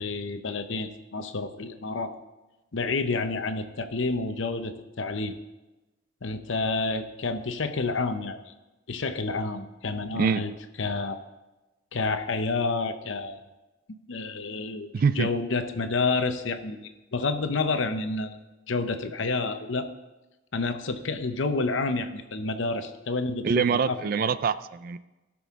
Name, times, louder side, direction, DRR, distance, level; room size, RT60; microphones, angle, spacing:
voice 1, 0.0-2.1 2.7-5.4 6.2-8.5 8.9-10.5 10.8-11.2 11.9-13.4 14.1-14.9 15.1-18.4 18.7-19.9 20.5-24.3, left 3 dB, 75° left, 9 dB, 0.8 m, -29 dB
voice 2, 14.9-15.3 23.4-25.0, right 6 dB, 45° right, 15 dB, 0.3 m, -24 dB
17.0 x 6.2 x 3.6 m, 1.1 s
head